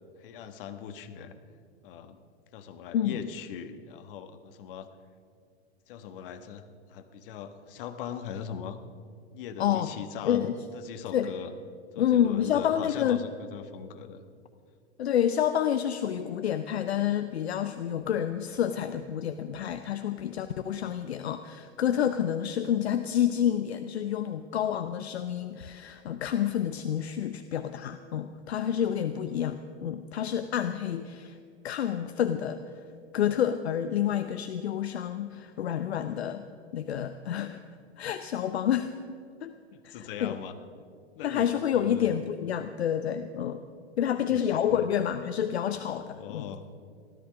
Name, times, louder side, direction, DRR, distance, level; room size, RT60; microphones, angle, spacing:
voice 1, 0.2-1.4 1.8-2.2 2.5-4.9 5.9-6.6 6.9-8.8 9.3-11.5 11.9-14.2 39.9-40.5 41.2-42.1 44.2-44.8 46.1-46.6, left 8 dB, 55° left, 9 dB, 1.4 m, -40 dB
voice 2, 2.9-3.3 9.6-9.9 10.2-10.5 11.1-11.3 12.0-13.2 15.0-31.4 31.6-32.6 33.1-36.4 36.7-37.6 38.0-38.9 39.4-39.5 39.8-40.3 41.2-43.6 44.0-46.5, left 9 dB, 70° left, 10 dB, 0.8 m, -28 dB
16.0 x 13.0 x 6.0 m, 2.2 s
hypercardioid pair, 105°, 33 cm